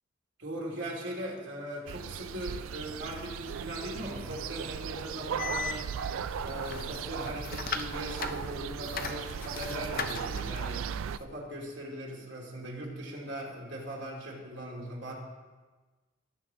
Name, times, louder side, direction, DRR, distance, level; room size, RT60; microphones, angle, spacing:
voice 1, 0.4-5.9 6.4-10.9 11.2-15.1, equal, 60° right, -2 dB, 2.7 m, -39 dB
sound 1, 1.9-11.2, right 8 dB, 75° right, 0.3 m, -37 dB
sound 2, 5.4-11.2, left 5 dB, 45° left, 0.6 m, -39 dB
17.5 x 7.4 x 3.7 m, 1.3 s
head